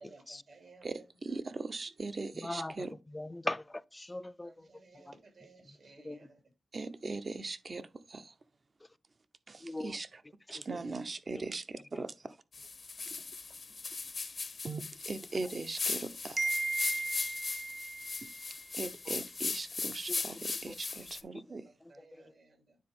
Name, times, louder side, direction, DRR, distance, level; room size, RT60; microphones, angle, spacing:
voice 1, 0.0-1.4 2.6-2.9 4.4-6.4 21.6-22.8, right 3 dB, 75° right, 2.9 m, -58 dB
voice 2, 1.2-2.9 6.7-8.3 9.5-10.1 10.5-12.1 14.6-21.6, right 3 dB, 45° right, 0.8 m, -38 dB
voice 3, 2.3-4.7 4.9-5.1 5.7-5.8 6.0-6.2 9.6-10.0 10.5-10.8 11.9-12.1 19.1-19.2 20.1-20.4 20.7-20.8 21.3-21.4 22.0-22.3, left 1 dB, 20° left, 0.4 m, -41 dB
sound 1, 12.5-21.2, left 4 dB, 55° left, 0.7 m, -38 dB
9.5 x 4.0 x 3.6 m
cardioid pair, 60°, 0 cm